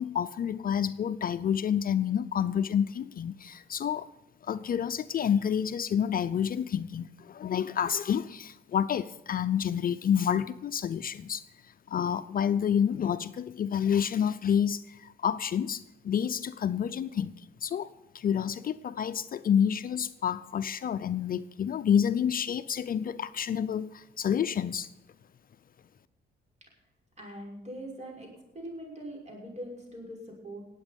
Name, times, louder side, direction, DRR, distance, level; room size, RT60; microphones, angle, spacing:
voice 1, 0.0-4.1 4.4-11.4 11.9-17.3 17.6-24.9, left 8 dB, 45° left, 0.5 m, -29 dB
voice 2, 27.2-28.3 28.5-30.6, right 1 dB, 35° right, 6.0 m, -42 dB
19.5 x 8.2 x 5.3 m
cardioid pair, 90°, 20 cm